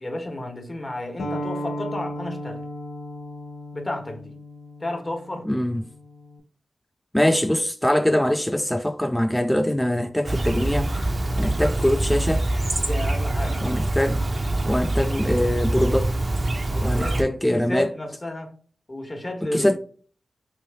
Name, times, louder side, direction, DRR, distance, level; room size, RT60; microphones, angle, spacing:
voice 1, 0.0-2.6 3.7-4.3 4.8-5.5 12.8-13.6 16.7-18.5 18.9-19.8, left 1 dB, 35° left, 1.1 m, -32 dB
sound 1, 1.2-6.4, equal, 80° left, 0.6 m, -35 dB
voice 2, 5.4-5.8 7.1-10.9 11.4-12.5 13.6-14.2 14.6-16.1 16.8-17.9 19.5-19.8, left 1 dB, 10° left, 0.3 m, -23 dB
Chirp tweet, 10.3-17.2, right 2 dB, 45° right, 0.7 m, -24 dB
3.1 x 2.9 x 3.4 m
cardioid pair, 45°, 0 cm